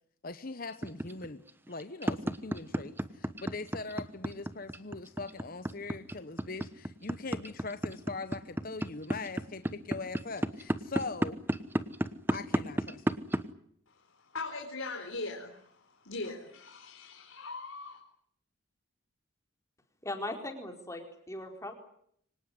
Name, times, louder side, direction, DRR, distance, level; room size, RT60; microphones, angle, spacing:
voice 1, 0.2-1.4 1.7-11.4 12.3-13.2, left 3 dB, 45° left, 11 dB, 1.0 m, -41 dB
sound 1, 0.8-13.4, right 1 dB, 10° right, 1.0 m, -31 dB
voice 2, 13.9-18.0, left 3 dB, 80° left, 1 dB, 4.2 m, -41 dB
voice 3, 20.0-21.7, left 1 dB, 15° left, 4 dB, 4.2 m, -39 dB
25.0 x 18.5 x 9.8 m, 0.68 s
head